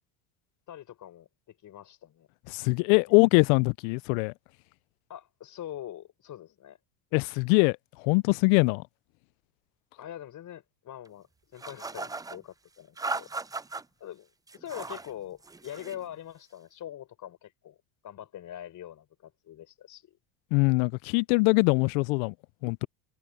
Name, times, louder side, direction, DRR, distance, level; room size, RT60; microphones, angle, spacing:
voice 1, 0.7-2.3 3.1-3.2 5.1-6.8 10.0-11.3 11.5-13.3 14.0-14.3 14.5-17.8 18.0-20.2, left 11 dB, 45° left, 6.3 m, -43 dB
voice 2, 2.5-4.3 7.1-7.8 8.0-8.8 20.5-22.3 22.6-22.9, left 29 dB, 70° left, 0.6 m, -23 dB
sound 1, 11.6-12.4 13.0-13.8 14.5-15.1 15.4-16.0, right 3 dB, 10° right, 0.6 m, -36 dB
supercardioid pair, 90°, 42 cm